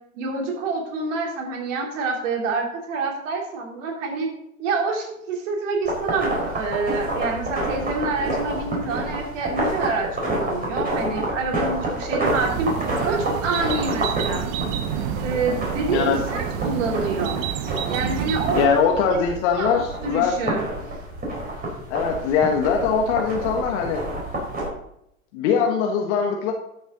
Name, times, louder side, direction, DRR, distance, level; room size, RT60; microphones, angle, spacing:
voice 1, 0.1-4.3 4.6-14.5 15.1-17.4 17.9-18.7 19.6-20.7, right 3 dB, 60° right, 0 dB, 3.3 m, -27 dB
sound 1, 5.9-24.7, right 1 dB, 20° right, 4.6 m, -29 dB
sound 2, 12.2-18.7, right 9 dB, 45° right, 1.1 m, -29 dB
voice 2, 18.5-20.6 21.9-24.0 25.3-26.5, left 6 dB, 55° left, 2 dB, 1.5 m, -21 dB
12.5 x 7.1 x 3.9 m, 0.77 s
hypercardioid pair, 95°, 41 cm